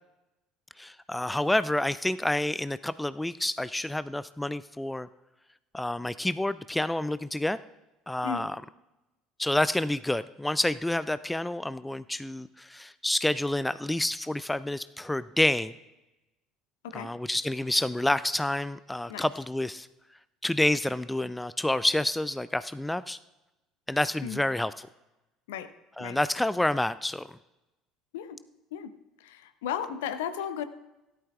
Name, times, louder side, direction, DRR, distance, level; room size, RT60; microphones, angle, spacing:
voice 1, 0.8-5.1 5.7-7.6 8.1-8.6 9.4-15.7 16.9-19.9 20.4-23.2 23.9-24.9 26.0-27.4, left 1 dB, 5° left, 16 dB, 0.4 m, -28 dB
voice 2, 29.2-30.6, left 9 dB, 65° left, 12 dB, 0.7 m, -34 dB
17.0 x 11.5 x 2.4 m, 0.99 s
figure-of-eight pair, 60°, 0 cm